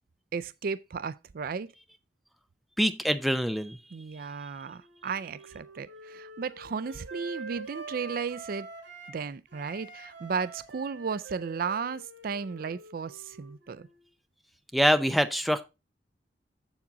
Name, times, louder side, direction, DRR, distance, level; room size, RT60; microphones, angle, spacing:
voice 1, 0.3-1.7 3.9-8.7 9.1-13.9, right 5 dB, 55° right, 0.4 m, -34 dB
voice 2, 2.8-3.8 14.7-15.6, equal, ahead, 0.5 m, -25 dB
Wind instrument woodwind instrument, 4.6-9.2 9.5-14.0, right 3 dB, 85° right, 4.4 m, -45 dB
7.3 x 7.2 x 3.9 m
head